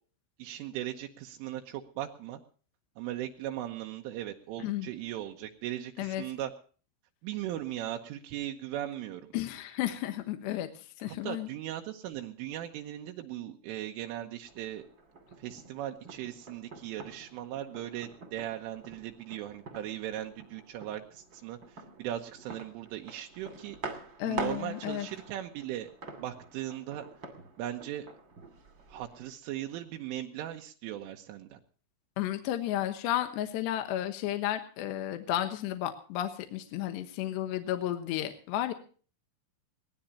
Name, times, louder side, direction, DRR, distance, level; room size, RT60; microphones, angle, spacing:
voice 1, 0.4-2.4 3.0-6.5 7.2-9.3 11.1-14.8 15.4-23.8 24.2-25.9 26.2-27.1 27.6-28.1 28.9-31.6, right 12 dB, 80° right, 3 dB, 3.5 m, -38 dB
voice 2, 9.3-11.5 24.2-25.1 32.2-38.7, left 12 dB, 70° left, 7 dB, 3.0 m, -33 dB
sound 1, 14.4-29.3, right 3 dB, 35° right, 2.2 m, -46 dB
22.0 x 17.5 x 2.8 m, 0.41 s
omnidirectional pair, 5.7 m